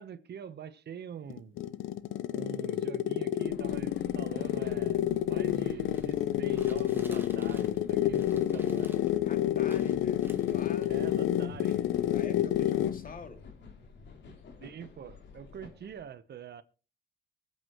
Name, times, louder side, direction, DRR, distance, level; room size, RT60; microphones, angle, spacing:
voice 1, 0.0-1.5 2.3-8.9 10.9-11.8 14.2-16.6, right 8 dB, 55° right, 1.1 m, -45 dB
sound 1, 1.3-13.1, left 12 dB, 80° left, 0.7 m, -29 dB
sound 2, 3.5-16.0, left 4 dB, 65° left, 3.2 m, -50 dB
sound 3, 5.9-7.8 8.1-9.1 9.7-10.8, right 2 dB, 10° right, 2.3 m, -54 dB
voice 2, 9.2-11.4 12.1-13.4, left 4 dB, 45° left, 2.4 m, -46 dB
24.0 x 8.4 x 3.1 m
cardioid pair, 90°, 20 cm